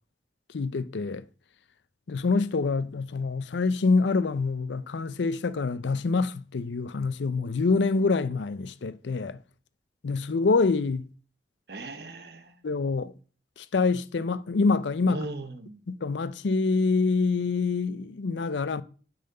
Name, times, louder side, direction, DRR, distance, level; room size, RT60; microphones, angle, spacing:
voice 1, 0.5-1.2 2.1-9.4 10.0-11.0 12.6-13.1 13.6-15.2 15.9-18.8, left 4 dB, 85° left, 0.5 m, -26 dB
voice 2, 11.7-12.5 13.0-13.1 15.1-15.8, right 2 dB, 65° right, 0.9 m, -38 dB
6.6 x 4.2 x 6.5 m
head